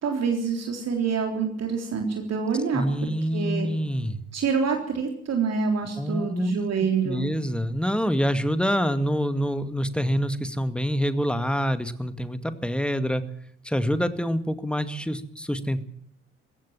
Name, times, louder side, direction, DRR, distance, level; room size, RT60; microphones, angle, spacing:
voice 1, 0.0-2.9 3.3-3.7 4.3-7.3, right 5 dB, 45° right, 3 dB, 3.6 m, -26 dB
voice 2, 2.7-4.2 6.0-6.6 7.0-13.2 13.6-15.8, equal, 5° left, 11 dB, 2.0 m, -26 dB
22.0 x 16.5 x 7.4 m, 0.66 s
figure-of-eight pair, 50°, 36 cm